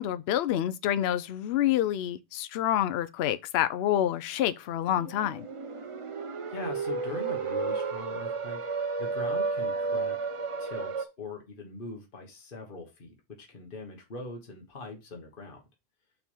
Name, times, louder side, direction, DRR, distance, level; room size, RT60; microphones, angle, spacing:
voice 1, 0.0-5.5, left 11 dB, 65° left, 0.7 m, -27 dB
sound 1, 4.8-11.0, right 4 dB, 35° right, 0.5 m, -32 dB
voice 2, 6.5-10.2 10.6-15.6, left 3 dB, 50° left, 1.5 m, -42 dB
5.8 x 3.4 x 5.4 m
omnidirectional pair, 1.2 m